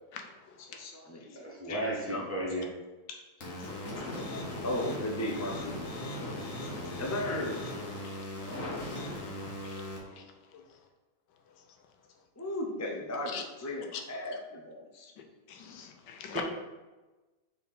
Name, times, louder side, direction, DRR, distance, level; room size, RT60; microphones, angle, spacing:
voice 1, 0.8-2.5 3.6-3.7 4.0-4.1 4.6-5.8 6.9-7.7 8.5-8.8 12.4-15.1, left 1 dB, 25° left, 0 dB, 0.3 m, -36 dB
voice 2, 1.3-2.7 16.3-16.4, right 1 dB, 10° right, -4 dB, 1.0 m, -34 dB
sound 1, 3.4-10.0, left 1 dB, 50° left, 1.6 m, -38 dB
voice 3, 9.6-10.1 13.3-13.4 13.9-14.0 15.5-16.4, left 8 dB, 90° left, 4 dB, 1.4 m, -42 dB
4.5 x 4.4 x 5.5 m, 1.2 s
omnidirectional pair, 1.8 m